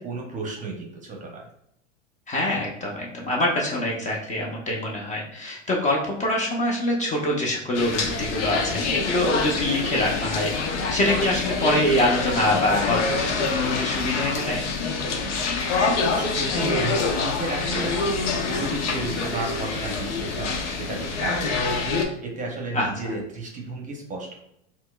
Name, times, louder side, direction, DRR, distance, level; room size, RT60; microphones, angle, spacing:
voice 1, 0.0-1.5 16.0-18.0 18.5-21.8 22.2-24.3, right 3 dB, 20° right, 0 dB, 0.7 m, -33 dB
voice 2, 2.3-10.5 10.9-14.6 22.7-23.1, left 1 dB, 20° left, -2 dB, 0.6 m, -25 dB
sound 1, 7.7-22.0, left 4 dB, 90° left, 0.7 m, -26 dB
4.3 x 2.0 x 2.3 m, 0.76 s
hypercardioid pair, 110°, 35 cm